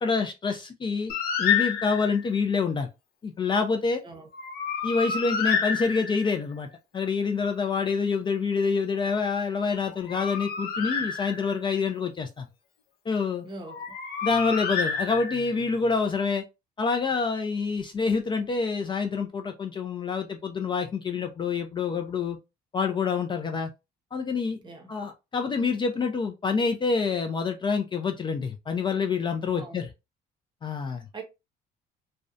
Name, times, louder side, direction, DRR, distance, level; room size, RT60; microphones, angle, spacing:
voice 1, 0.0-1.1 1.4-2.9 3.2-4.0 4.8-6.7 6.9-12.5 13.1-13.5 14.2-16.4 16.8-22.4 22.7-23.7 24.1-24.6 24.9-29.9 30.6-31.1, left 5 dB, 30° left, 0.4 m, -27 dB
Bird, 1.1-2.3 4.3-6.4 9.8-11.7 13.7-15.6, left 7 dB, 70° left, 0.7 m, -29 dB
voice 2, 13.4-13.9 24.6-24.9 29.5-29.9 31.1-31.2, right 3 dB, 25° right, 0.8 m, -42 dB
2.6 x 2.1 x 2.3 m
cardioid pair, 110°, 17 cm